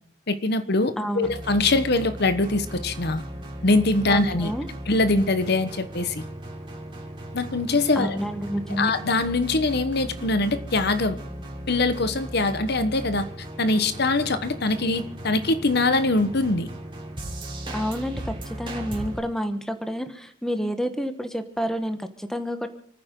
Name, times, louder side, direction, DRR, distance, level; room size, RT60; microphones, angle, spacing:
voice 1, 0.3-3.2 3.6-4.5 4.9-6.2 7.3-8.2 8.7-11.2 11.7-13.3 13.6-16.7, left 2 dB, 55° left, 10 dB, 1.1 m, -23 dB
voice 2, 1.0-1.3 4.1-4.7 8.0-8.9 17.7-22.7, equal, ahead, 8 dB, 1.2 m, -29 dB
sound 1, 1.2-19.2, right 1 dB, 25° right, 3.4 m, -37 dB
29.0 x 9.8 x 3.8 m, 0.64 s
head